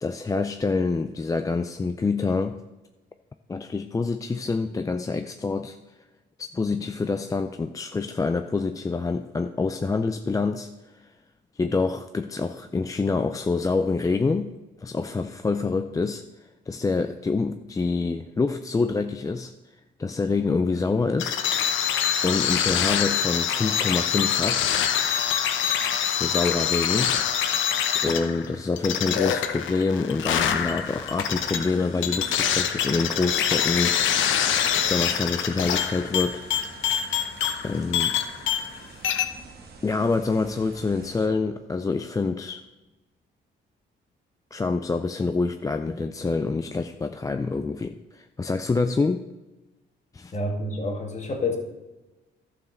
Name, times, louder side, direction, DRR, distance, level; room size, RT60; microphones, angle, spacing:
voice 1, 0.0-2.6 3.5-5.8 6.4-11.1 11.6-19.5 20.0-21.4 22.2-24.7 26.0-27.2 28.0-34.5 34.8-36.4 37.6-38.2 39.8-42.6 44.5-49.2 50.1-50.3, left 4 dB, 15° left, 7 dB, 0.4 m, -26 dB
sound 1, 21.2-38.8 39.0-39.3, left 8 dB, 75° left, 0.8 m, -25 dB
sound 2, 30.3-41.3, right 3 dB, 55° right, 1.6 m, -45 dB
voice 2, 50.3-51.6, left 2 dB, 35° left, 2 dB, 1.9 m, -28 dB
11.5 x 4.8 x 6.4 m, 1.1 s
cardioid pair, 90°, 20 cm